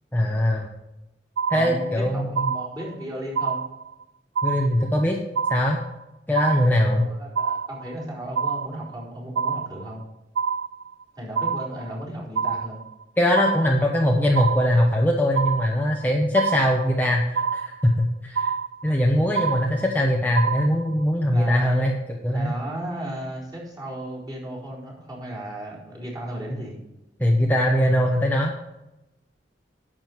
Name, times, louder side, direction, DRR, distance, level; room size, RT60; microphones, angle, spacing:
voice 1, 0.1-0.7 1.5-2.5 4.4-5.2 5.5-5.8 6.3-7.1 13.2-18.5 18.8-21.9 22.2-22.5 27.2-28.5, left 1 dB, 10° left, -1 dB, 0.9 m, -21 dB
sound 1, 1.4-2.0 2.4-3.0 3.4-4.0 4.4-5.0 5.4-6.0 6.4-7.0 7.4-8.0 8.4-9.0 9.4-10.0 10.4-11.0 11.4-12.0 12.4-13.0 13.3-14.0 14.3-15.0 15.4-16.0 16.4-17.0 17.4-18.0 18.4-19.0 19.4-20.0 20.4-21.0, right 6 dB, 80° right, 0.4 m, -27 dB
voice 2, 1.5-3.6 6.9-10.0 11.2-12.8 21.3-21.8 22.2-26.8, right 1 dB, 20° right, -6 dB, 4.3 m, -35 dB
10.5 x 7.6 x 4.6 m, 0.92 s
head